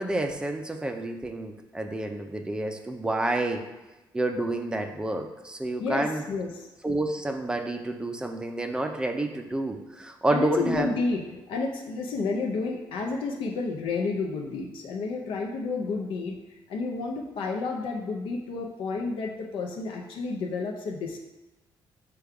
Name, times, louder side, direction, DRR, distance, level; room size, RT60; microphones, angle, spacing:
voice 1, 0.0-3.6 4.1-6.2 6.8-10.9, right 2 dB, 10° right, 5 dB, 0.4 m, -29 dB
voice 2, 5.8-6.7 10.3-16.4 16.7-21.2, left 3 dB, 80° left, 0 dB, 0.5 m, -30 dB
5.0 x 2.3 x 4.6 m, 1.1 s
cardioid pair, 120°, 9 cm